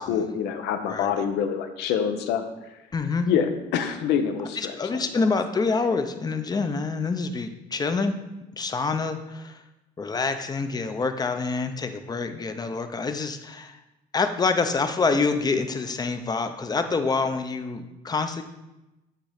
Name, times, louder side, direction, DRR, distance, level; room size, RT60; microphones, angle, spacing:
voice 1, 0.0-2.8 3.3-5.2, left 8 dB, 85° left, 7 dB, 0.7 m, -26 dB
voice 2, 2.9-3.3 4.6-8.2 8.5-9.6 10.0-13.8 14.1-18.4, left 4 dB, 25° left, 8 dB, 0.6 m, -26 dB
8.9 x 3.1 x 4.9 m, 0.99 s
cardioid pair, 110°, 17 cm